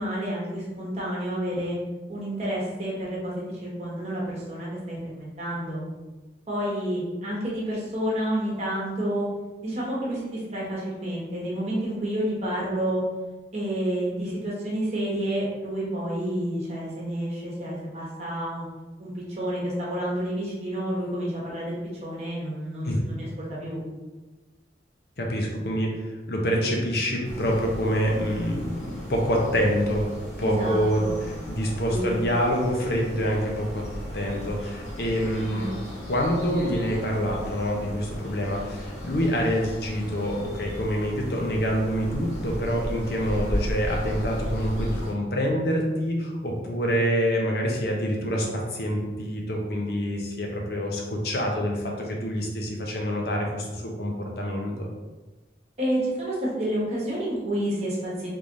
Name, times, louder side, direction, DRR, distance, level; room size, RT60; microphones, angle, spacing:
voice 1, 0.0-1.8 2.1-5.8 6.5-9.3 9.6-13.0 13.5-18.6 19.0-23.8 30.4-31.2 31.9-32.2 35.5-35.7 55.8-58.3, right 1 dB, 35° right, -6 dB, 1.1 m, -29 dB
voice 2, 25.2-26.0 26.3-30.1 30.4-33.8 34.1-35.7 36.1-54.9, equal, 60° left, 0 dB, 0.6 m, -26 dB
sound 1, 27.2-45.1, equal, 40° left, 0.9 m, -36 dB
3.5 x 3.2 x 2.6 m, 1.2 s
head